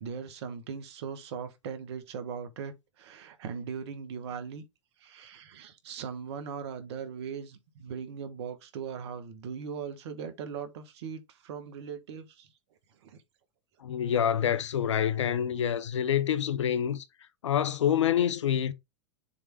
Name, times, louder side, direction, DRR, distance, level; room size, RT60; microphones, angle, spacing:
voice 1, 0.0-4.6 5.0-12.5 13.0-13.2, right 6 dB, 60° right, 1.5 m, -39 dB
voice 2, 13.8-17.0 17.4-18.7, left 9 dB, 75° left, 0.8 m, -27 dB
7.0 x 3.6 x 4.4 m
figure-of-eight pair, 95°, 16 cm